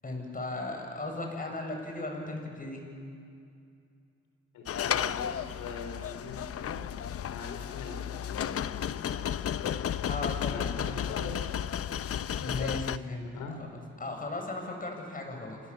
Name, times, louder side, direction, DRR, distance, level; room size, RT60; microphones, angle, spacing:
voice 1, 0.0-2.8 10.1-11.0 12.4-15.6, left 2 dB, 30° left, 2 dB, 7.4 m, -37 dB
voice 2, 4.5-6.8 7.2-9.8 10.4-12.1 13.3-13.6, left 4 dB, 90° left, 3 dB, 4.2 m, -42 dB
sound 1, 4.7-13.0, left 9 dB, 50° left, 0.7 m, -33 dB
29.5 x 26.0 x 7.3 m, 2.5 s
cardioid pair, 90°, 30 cm